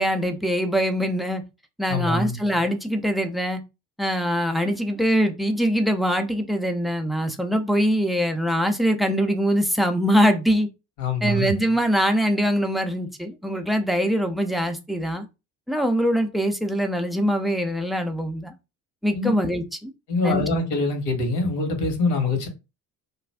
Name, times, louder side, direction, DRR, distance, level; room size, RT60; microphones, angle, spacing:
voice 1, 0.0-1.4 1.8-3.6 4.0-10.7 11.2-15.3 15.7-18.5 19.0-19.9 20.2-20.4, equal, ahead, 0.3 m, -23 dB
voice 2, 1.9-2.4 11.0-11.5 19.1-19.3 20.1-22.5, left 2 dB, 55° left, 1.3 m, -24 dB
2.5 x 2.3 x 3.3 m
hypercardioid pair, 55°, 49 cm